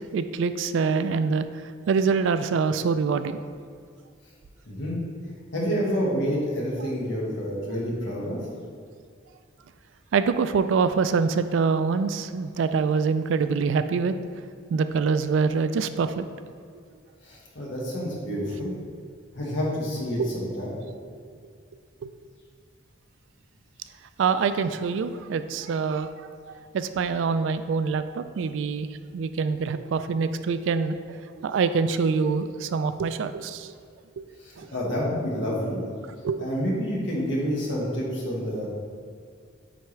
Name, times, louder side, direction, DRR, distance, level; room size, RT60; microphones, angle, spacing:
voice 1, 0.1-1.5 1.9-3.4 10.1-14.1 14.7-16.3 20.2-20.3 24.2-26.3 26.7-28.9 29.1-31.1 31.4-33.7 36.2-36.5, right 5 dB, 75° right, 11 dB, 0.3 m, -25 dB
voice 2, 4.7-5.0 5.5-8.4 17.2-18.7 19.4-20.7 34.4-35.8 36.4-38.7, equal, 65° left, -4 dB, 1.5 m, -28 dB
9.1 x 3.4 x 3.2 m, 2.2 s
head